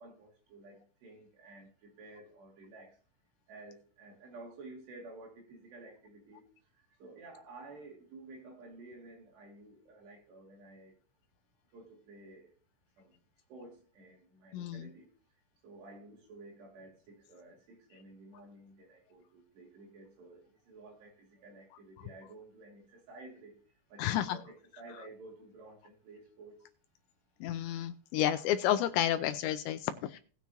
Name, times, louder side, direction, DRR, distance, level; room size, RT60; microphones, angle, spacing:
voice 1, 0.0-2.9 3.5-6.4 7.0-10.9 11.7-12.5 13.0-13.1 13.5-15.1 15.6-20.4 20.7-23.5 23.9-26.6, right 2 dB, 65° right, -1 dB, 4.7 m, -52 dB
voice 2, 14.5-14.8 24.0-24.4 27.4-30.2, left 11 dB, 80° left, 9 dB, 2.6 m, -31 dB
18.5 x 7.0 x 3.0 m, 0.41 s
omnidirectional pair, 5.4 m